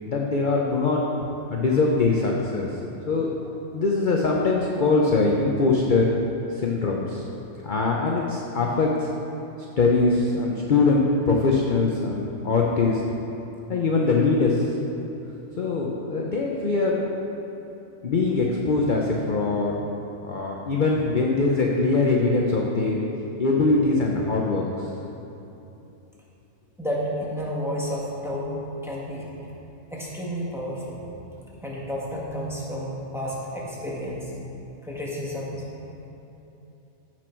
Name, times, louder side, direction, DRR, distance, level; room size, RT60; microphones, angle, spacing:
voice 1, 0.1-1.1 1.5-2.8 3.1-3.4 3.7-6.1 6.5-7.2 7.6-9.1 9.8-13.0 13.7-14.8 15.6-17.0 18.0-19.8 20.2-23.0 23.4-24.9, left 3 dB, 40° left, -1 dB, 0.8 m, -22 dB
voice 2, 26.8-28.6 28.8-29.3 29.9-31.0 31.6-34.3 34.8-35.7, equal, ahead, -5 dB, 1.5 m, -31 dB
14.5 x 6.1 x 4.5 m, 2.9 s
omnidirectional pair, 1.5 m